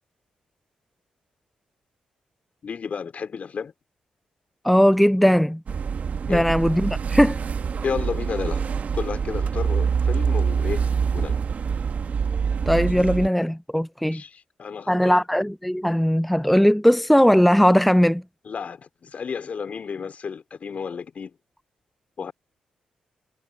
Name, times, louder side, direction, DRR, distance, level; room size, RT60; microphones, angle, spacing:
voice 1, 2.6-3.7 6.3-6.5 7.8-8.6 8.9-10.9 11.1-11.4 11.7-11.8 14.0-15.2 18.4-21.3 22.2-22.3, left 6 dB, 55° left, 4.3 m, -32 dB
voice 2, 4.6-5.6 6.3-7.4 12.7-14.2 14.9-18.2, equal, 5° left, 0.4 m, -19 dB
sound 1, 5.7-13.3, right 6 dB, 55° right, 1.4 m, -25 dB
supercardioid pair, 45°, 3 cm